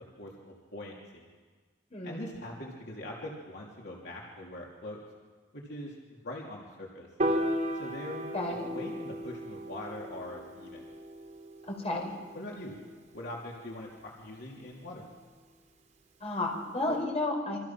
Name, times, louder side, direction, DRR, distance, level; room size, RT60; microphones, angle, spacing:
voice 1, 0.2-1.3 2.0-5.0 5.5-7.1 7.8-8.2 8.7-10.9 11.9-12.1 12.3-12.8 13.1-15.0, left 1 dB, 65° left, -2 dB, 3.2 m, -42 dB
voice 2, 1.9-2.2 8.3-8.7 11.7-12.0 16.2-17.6, left 2 dB, 35° left, 1 dB, 5.1 m, -32 dB
Piano, 7.2-13.5, equal, 40° right, 3.5 m, -36 dB
27.5 x 26.0 x 6.0 m, 1.5 s
head